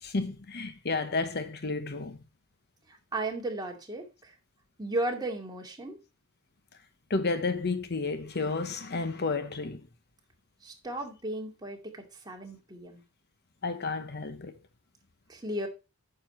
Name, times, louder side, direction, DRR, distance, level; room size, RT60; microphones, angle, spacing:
voice 1, 0.0-2.2 7.1-9.9 13.6-14.5, left 3 dB, 50° left, 1.0 m, -31 dB
voice 2, 2.9-4.3 4.8-6.0 10.6-13.0 15.3-15.7, right 1 dB, 20° right, 2.3 m, -35 dB
9.4 x 6.8 x 4.3 m
head